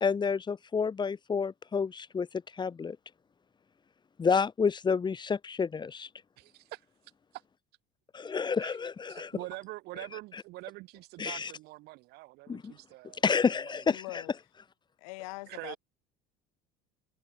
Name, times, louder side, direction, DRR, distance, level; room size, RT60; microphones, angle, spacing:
voice 1, 0.0-3.0 4.2-6.1 8.1-9.3 11.2-11.5 12.5-12.7 13.2-14.2, left 5 dB, 25° left, 2.4 m, -29 dB
voice 2, 6.4-6.8 7.3-7.4 8.6-8.8 9.1-13.2 13.7-13.8 15.5-15.8, right 21 dB, 65° right, 2.6 m, -44 dB
voice 3, 13.9-14.3 15.0-15.8, left 25 dB, 85° left, 2.6 m, -42 dB
supercardioid pair, 100°, 18 cm